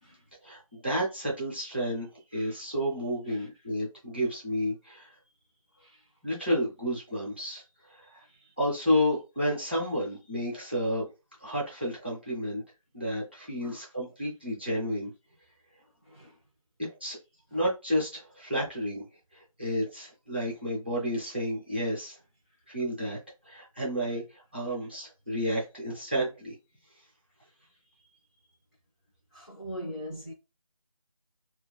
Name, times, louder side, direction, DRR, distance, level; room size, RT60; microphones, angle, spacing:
voice 1, 0.4-5.1 6.2-7.6 7.9-8.2 8.6-11.1 11.4-12.6 12.9-15.1 16.8-17.2 17.5-19.1 19.3-22.2 22.7-23.2 23.4-26.5, equal, 20° right, 0.6 m, -31 dB
voice 2, 13.5-13.8 16.0-16.4 24.1-24.2 24.7-24.8 29.3-30.3, equal, 30° left, 0.6 m, -42 dB
2.6 x 2.3 x 2.3 m
figure-of-eight pair, 175°, 18 cm